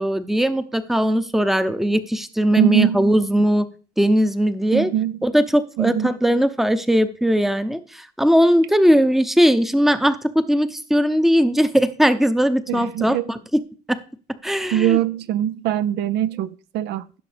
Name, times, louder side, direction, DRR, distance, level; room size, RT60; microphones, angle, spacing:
voice 1, 0.0-3.7 4.0-4.9 5.2-13.6 13.9-14.0 14.4-15.0, equal, ahead, 0.6 m, -19 dB
voice 2, 2.5-3.1 4.7-5.2 5.8-6.1 12.7-13.3 14.7-17.0, right 12 dB, 80° right, 0.5 m, -22 dB
15.0 x 6.2 x 3.4 m
cardioid pair, 110°, 17 cm